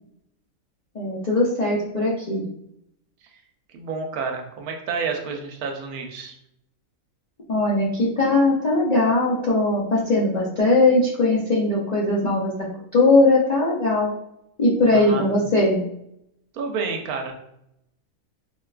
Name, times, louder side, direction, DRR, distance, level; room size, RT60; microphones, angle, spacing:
voice 1, 0.9-2.5 7.5-12.5 12.9-14.1 14.6-15.8, left 2 dB, 65° left, -6 dB, 0.4 m, -20 dB
voice 2, 3.7-6.3 14.9-15.3 16.5-17.3, right 5 dB, 85° right, 3 dB, 1.1 m, -29 dB
4.2 x 2.2 x 2.3 m, 0.76 s
omnidirectional pair, 1.5 m